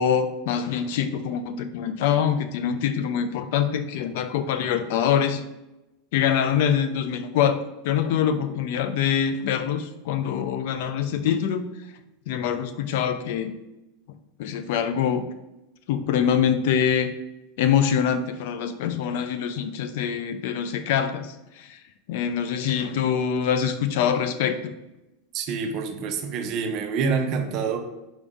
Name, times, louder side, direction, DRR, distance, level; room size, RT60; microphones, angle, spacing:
voice 1, 0.0-5.4 6.1-11.7 12.3-13.5 14.4-15.3 15.9-17.1 17.6-21.8 22.1-24.7, left 8 dB, 65° left, 10 dB, 0.4 m, -24 dB
voice 2, 25.3-27.8, right 5 dB, 45° right, 5 dB, 0.6 m, -27 dB
4.9 x 2.6 x 3.6 m, 0.94 s
supercardioid pair, 145°, 0 cm